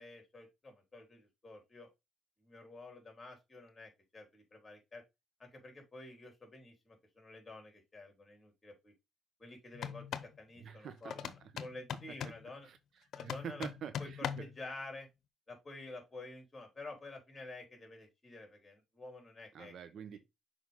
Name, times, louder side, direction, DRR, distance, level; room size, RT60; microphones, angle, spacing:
voice 1, 0.0-1.9 2.4-5.0 5.4-8.9 9.4-11.2 11.6-12.7 13.2-13.7 14.0-15.1 15.5-19.7 20.1-20.2, left 2 dB, 25° left, 4.2 m, -50 dB
sound 1, 9.7-10.4 11.1-12.4 13.1-14.6, left 9 dB, 70° left, 0.8 m, -41 dB
voice 2, 10.6-11.7 12.2-12.3 12.6-12.8 13.2-14.5 19.5-20.2, right 8 dB, 65° right, 1.1 m, -46 dB
6.4 x 5.1 x 3.8 m
cardioid pair, 90°, 0 cm